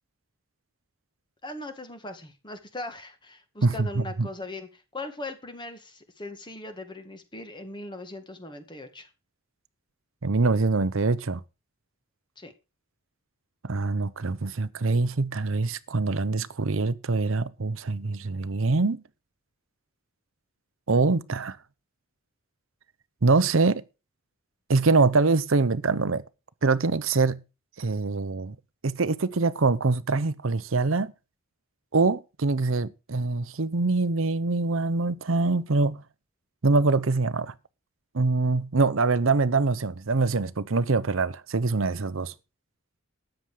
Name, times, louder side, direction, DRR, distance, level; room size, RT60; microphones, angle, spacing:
voice 1, 1.4-9.1 12.4-12.5, left 2 dB, 20° left, 1.9 m, -39 dB
voice 2, 3.6-4.3 10.2-11.4 13.6-19.0 20.9-21.6 23.2-23.8 24.7-26.2 26.6-27.4 27.8-28.5 28.8-31.1 31.9-36.0 36.6-37.5 38.1-42.3, right 3 dB, 65° right, 0.7 m, -24 dB
13.5 x 9.0 x 4.9 m
head